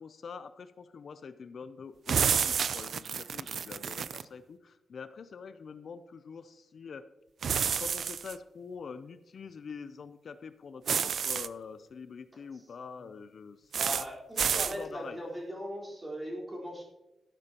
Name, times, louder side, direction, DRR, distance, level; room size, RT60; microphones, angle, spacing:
voice 1, 0.0-7.1 7.6-14.0 14.5-15.2, left 5 dB, 55° left, 11 dB, 0.5 m, -45 dB
sound 1, 2.1-4.2 7.4-8.3 10.9-11.5 13.7-14.1 14.4-14.8, right 7 dB, 65° right, 0.4 m, -29 dB
voice 2, 13.8-16.8, equal, 20° right, -4 dB, 4.1 m, -39 dB
13.5 x 12.0 x 2.9 m, 0.99 s
wide cardioid pair, 145°, 0 cm